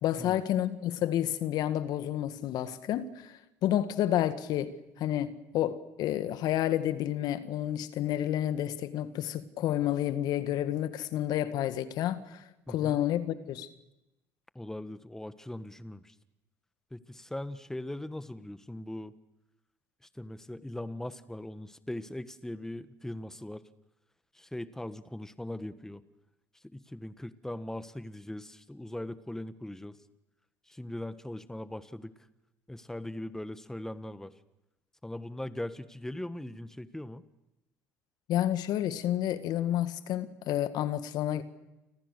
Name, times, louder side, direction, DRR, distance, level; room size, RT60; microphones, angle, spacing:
voice 1, 0.0-13.7 38.3-41.4, left 12 dB, 60° left, 1.9 m, -30 dB
voice 2, 12.7-13.0 14.5-16.1 16.9-19.1 20.1-23.7 24.3-26.0 26.6-30.0 30.7-32.1 32.7-34.3 35.0-37.2, left 1 dB, 5° left, 1.5 m, -40 dB
30.0 x 26.0 x 6.8 m
hypercardioid pair, 65°, 8 cm